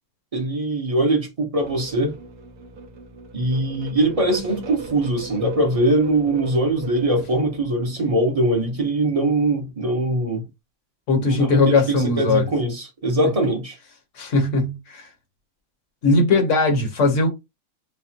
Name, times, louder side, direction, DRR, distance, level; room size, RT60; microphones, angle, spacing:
voice 1, 0.3-2.2 3.3-10.4 11.2-13.8, right 1 dB, 25° right, 0.8 m, -22 dB
sound 1, 1.6-7.6, right 4 dB, 65° right, 1.5 m, -39 dB
voice 2, 11.1-12.5 14.2-15.1 16.0-17.3, left 3 dB, 50° left, 1.2 m, -19 dB
5.1 x 2.1 x 2.8 m
omnidirectional pair, 1.8 m